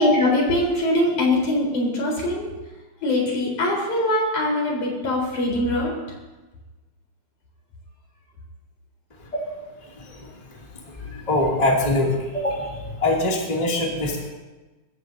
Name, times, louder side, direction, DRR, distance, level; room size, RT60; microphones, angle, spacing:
voice 1, 0.0-2.5 3.0-5.9, left 1 dB, 75° left, -2 dB, 5.7 m, -22 dB
voice 2, 9.9-10.6 11.0-14.3, left 1 dB, 15° left, -3 dB, 2.5 m, -24 dB
25.0 x 14.5 x 2.8 m, 1.1 s
omnidirectional pair, 3.4 m